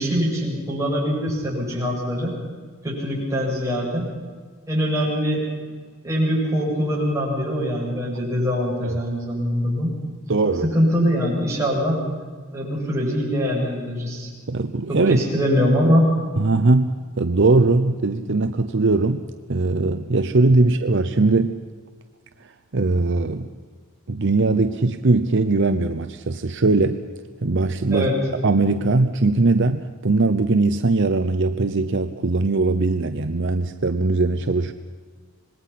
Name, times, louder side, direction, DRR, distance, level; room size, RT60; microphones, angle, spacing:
voice 1, 0.0-2.4 2.8-4.1 4.7-5.4 6.0-10.0 10.6-12.0 12.5-14.3 14.9-16.2 20.6-20.7 27.9-28.1, equal, 15° right, -4 dB, 7.6 m, -23 dB
voice 2, 10.3-10.7 14.5-15.2 16.4-19.2 19.5-21.6 22.4-23.5 24.1-27.0 27.4-28.1 28.4-34.7, right 3 dB, 60° right, 8 dB, 0.8 m, -20 dB
26.5 x 20.5 x 5.9 m, 1.6 s
head